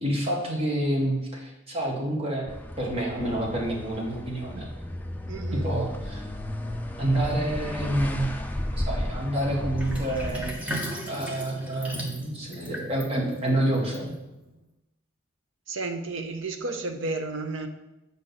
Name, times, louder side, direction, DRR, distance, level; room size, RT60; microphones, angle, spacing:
voice 1, 0.0-2.5 2.8-4.7 5.6-6.2 7.0-8.3 8.8-14.1, right 1 dB, 30° right, -2 dB, 1.4 m, -28 dB
sound 1, 2.5-10.5, left 1 dB, 10° left, 0.4 m, -33 dB
voice 2, 5.3-5.7 15.7-17.7, right 3 dB, 75° right, 5 dB, 0.8 m, -32 dB
Sink (filling or washing), 9.8-14.5, equal, 5° right, 0.9 m, -36 dB
7.6 x 5.5 x 4.0 m, 0.95 s
head